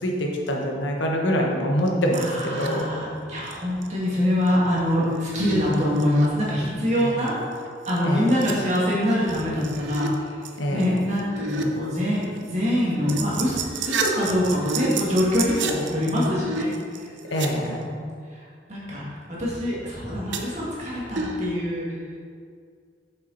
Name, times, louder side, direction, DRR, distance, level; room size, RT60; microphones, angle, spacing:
voice 1, 0.0-2.8 7.0-7.1 8.0-8.3 10.6-10.9 17.3-17.8, equal, 80° left, 0 dB, 1.2 m, -25 dB
voice 2, 2.1-7.3 7.9-10.1 10.7-13.6 13.9-16.7 17.7-18.0 18.7-19.0 19.4-21.8, left 1 dB, 40° right, -7 dB, 1.9 m, -24 dB
sound 1, 2.1-2.8 3.2-3.5 3.8-3.9 4.5-6.3 6.8-7.0 7.3-7.4 7.6-10.1 10.4-11.6 12.0-17.5 20.3-20.8 21.2-21.6, right 3 dB, 75° right, 0.6 m, -32 dB
7.1 x 6.0 x 4.1 m, 2.1 s
head